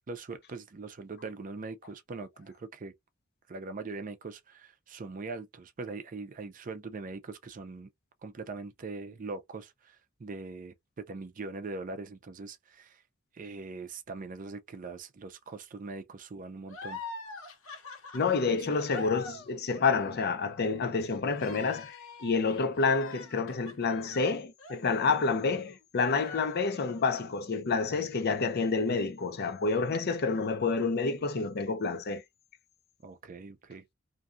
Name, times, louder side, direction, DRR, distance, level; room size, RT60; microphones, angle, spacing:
voice 1, 0.1-2.9 3.5-7.9 8.2-13.0 13.3-17.0 18.5-18.7 33.0-33.9, right 3 dB, 40° right, 0.4 m, -41 dB
sound 1, 16.7-25.7 26.1-27.1, left 3 dB, 70° left, 1.0 m, -45 dB
voice 2, 18.1-32.2, left 4 dB, 50° left, 0.5 m, -29 dB
2.6 x 2.3 x 2.5 m
head